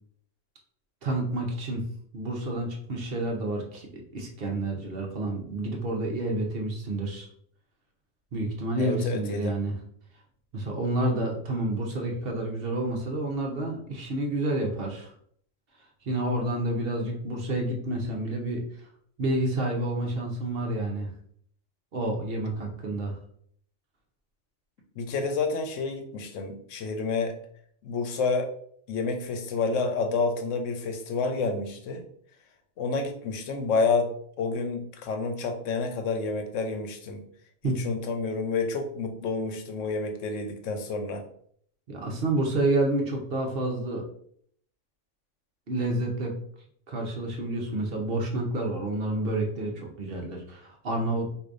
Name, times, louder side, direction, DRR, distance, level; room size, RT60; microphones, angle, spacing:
voice 1, 1.0-1.9 2.1-7.3 8.3-9.7 10.5-15.1 16.0-18.6 19.2-21.1 21.9-23.2 37.6-37.8 41.9-44.0 45.7-46.3 46.9-51.3, right 1 dB, 55° right, 1 dB, 0.9 m, -29 dB
voice 2, 8.8-9.6 25.0-27.4 27.8-28.5 28.9-32.0 32.8-37.2 37.6-41.2, left 4 dB, 80° left, 5 dB, 1.0 m, -29 dB
4.8 x 2.6 x 2.5 m, 0.63 s
omnidirectional pair, 1.3 m